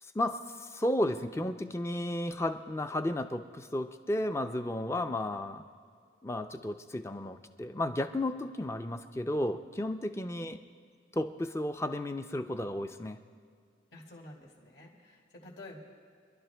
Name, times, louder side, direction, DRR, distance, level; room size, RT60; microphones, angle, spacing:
voice 1, 0.0-5.6 6.2-10.6 11.1-13.2, left 1 dB, 15° left, 7 dB, 0.4 m, -33 dB
voice 2, 13.9-15.8, left 2 dB, 60° left, -1 dB, 1.9 m, -50 dB
25.0 x 11.5 x 3.4 m, 2.2 s
head